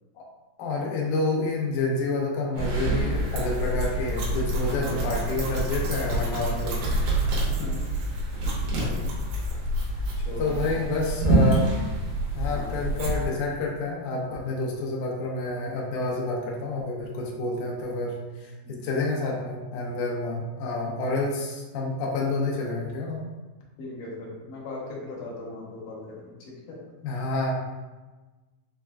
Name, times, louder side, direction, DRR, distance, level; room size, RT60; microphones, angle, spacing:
voice 1, 0.6-7.1 8.7-9.1 10.4-11.8 12.3-23.2 27.0-27.5, left 2 dB, 90° left, -2 dB, 1.7 m, -29 dB
sound 1, 2.5-13.2, right 1 dB, 75° right, 2.5 m, -27 dB
voice 2, 4.5-5.0 6.4-6.9 7.5-8.0 10.2-10.9 12.4-12.8 18.6-18.7 23.8-26.8, left 2 dB, 70° left, -4 dB, 2.1 m, -38 dB
6.3 x 2.4 x 2.2 m, 1.2 s
omnidirectional pair, 4.3 m